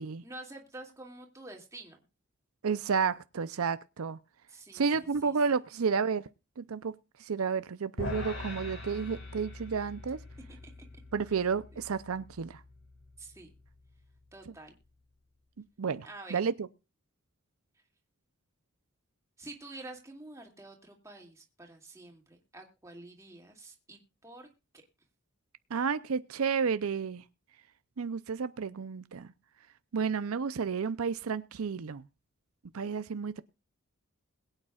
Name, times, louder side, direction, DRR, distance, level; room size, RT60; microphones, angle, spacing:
voice 1, 0.2-2.0 4.5-5.3 11.7-11.8 13.2-13.5 14.3-14.7 16.0-16.4 19.4-24.5, right 2 dB, 15° right, 2.3 m, -48 dB
voice 2, 2.6-4.2 4.7-6.3 6.6-6.9 7.2-10.2 11.1-12.6 15.8-16.7 25.7-27.2 28.0-29.3 29.9-32.0 32.7-33.4, right 5 dB, 85° right, 0.6 m, -31 dB
sound 1, 8.0-14.4, left 2 dB, 60° left, 4.6 m, -43 dB
21.5 x 8.9 x 2.4 m
head